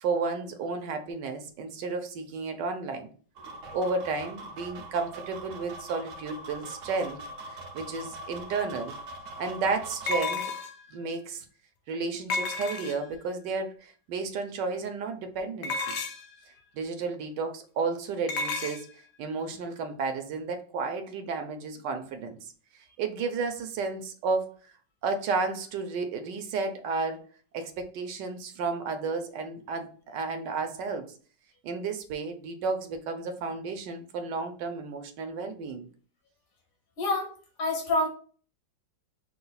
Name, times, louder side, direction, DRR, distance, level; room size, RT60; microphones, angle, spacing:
voice 1, 0.0-3.1 3.7-7.2 7.5-8.9 9.4-10.4 10.9-11.4 11.9-15.9 16.7-18.9 19.2-22.4 23.0-24.7 25.0-27.2 27.5-31.1 31.6-35.9, right 4 dB, 75° right, 6 dB, 1.3 m, -32 dB
sound 1, 3.4-10.2, right 2 dB, 60° right, 0.9 m, -42 dB
sound 2, 8.5-8.6 10.1-10.9 12.3-13.2 15.6-16.3 18.3-18.8, left 3 dB, 75° left, 0.7 m, -31 dB
voice 2, 37.0-37.3 37.6-38.1, left 2 dB, 90° left, 0 dB, 1.9 m, -26 dB
5.3 x 2.3 x 3.9 m, 0.42 s
omnidirectional pair, 2.0 m